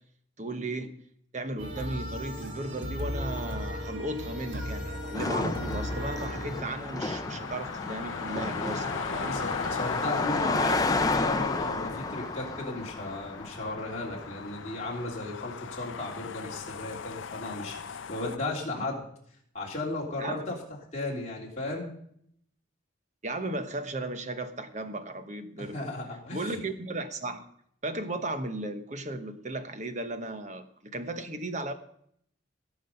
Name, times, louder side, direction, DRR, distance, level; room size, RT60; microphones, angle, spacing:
voice 1, 0.4-0.9 1.3-9.4 20.2-20.6 23.2-25.9 26.3-27.5 27.8-31.7, right 2 dB, 35° right, 8 dB, 1.0 m, -35 dB
sound 1, 1.6-6.6, equal, 70° right, 2.5 m, -36 dB
Car passing by, 5.1-14.7, left 3 dB, 20° left, 0.6 m, -32 dB
sound 2, 6.0-18.4, left 5 dB, 75° left, 0.6 m, -39 dB
voice 2, 9.3-19.0 19.5-20.6 20.9-21.9 25.6-26.6, left 2 dB, 35° left, -3 dB, 3.2 m, -35 dB
17.0 x 6.2 x 5.4 m, 0.68 s
head